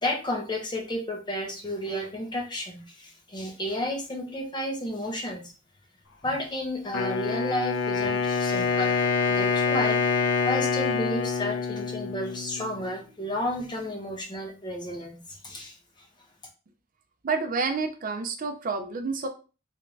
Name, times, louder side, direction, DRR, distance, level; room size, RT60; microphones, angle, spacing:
voice 1, 0.0-5.5 6.2-9.0 9.3-15.8, left 1 dB, 25° left, 1 dB, 0.7 m, -32 dB
Wind instrument woodwind instrument, 6.9-12.9, left 5 dB, 70° left, 0.5 m, -26 dB
voice 2, 17.2-19.3, right 4 dB, 45° right, 6 dB, 0.4 m, -29 dB
3.3 x 2.6 x 3.1 m, 0.33 s
head